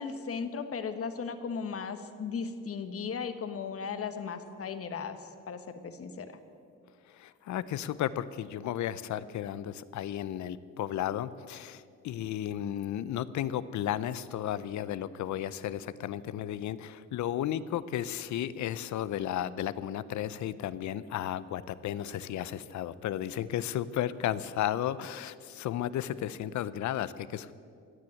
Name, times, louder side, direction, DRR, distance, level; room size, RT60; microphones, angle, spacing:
voice 1, 0.0-6.4, left 5 dB, 50° left, 9 dB, 1.2 m, -36 dB
voice 2, 7.1-27.5, left 11 dB, 70° left, 16 dB, 0.7 m, -34 dB
16.0 x 7.6 x 9.8 m, 2.3 s
cardioid pair, 90°, 30 cm